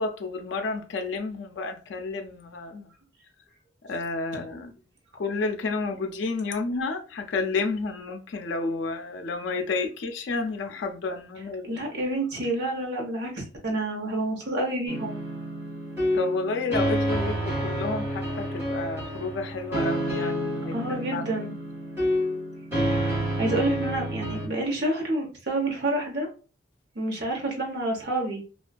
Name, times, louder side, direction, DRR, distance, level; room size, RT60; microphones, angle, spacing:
voice 1, 0.0-2.9 3.8-4.7 5.1-11.8 16.1-21.2, left 3 dB, 70° left, 0.4 m, -31 dB
voice 2, 11.7-15.1 20.7-21.5 22.8-26.3 27.0-28.4, right 1 dB, 60° right, 0.8 m, -29 dB
sound 1, 14.9-24.5, equal, 15° right, 1.2 m, -29 dB
2.5 x 2.3 x 2.2 m
head